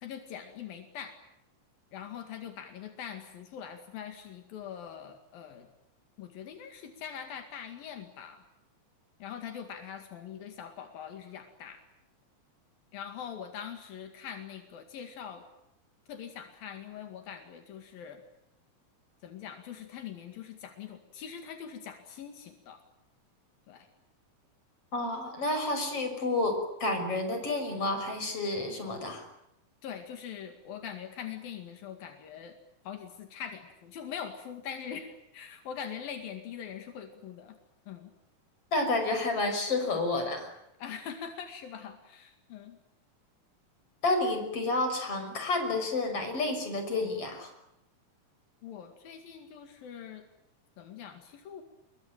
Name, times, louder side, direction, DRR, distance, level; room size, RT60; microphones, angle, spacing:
voice 1, 0.0-1.1 1.9-5.7 6.2-8.4 9.2-11.8 12.9-15.5 16.1-18.2 19.2-22.8 23.7-23.9 29.8-32.6 32.9-37.6 37.9-38.1 40.8-42.8 48.6-50.3 50.8-51.6, left 8 dB, 80° left, 6 dB, 3.9 m, -43 dB
voice 2, 24.9-26.5 26.8-29.2 38.7-40.5 44.0-47.5, left 2 dB, 40° left, 6 dB, 6.7 m, -30 dB
28.5 x 22.5 x 9.0 m, 0.83 s
omnidirectional pair, 4.0 m